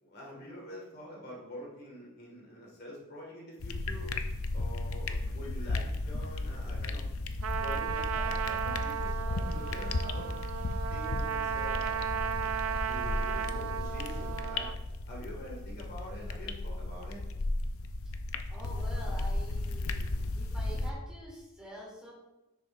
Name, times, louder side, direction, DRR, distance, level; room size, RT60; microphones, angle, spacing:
voice 1, 0.0-4.1 4.5-7.0 7.6-10.4 10.9-14.7 15.1-17.2, equal, 45° left, -3 dB, 2.1 m, -46 dB
sound 1, 3.6-20.9, left 2 dB, 65° left, 0.6 m, -35 dB
Trumpet, 7.4-14.8, right 8 dB, 65° right, 0.4 m, -35 dB
voice 2, 18.5-20.1 20.3-22.1, equal, 5° right, -6 dB, 2.9 m, -46 dB
10.0 x 6.9 x 2.6 m, 1.0 s
head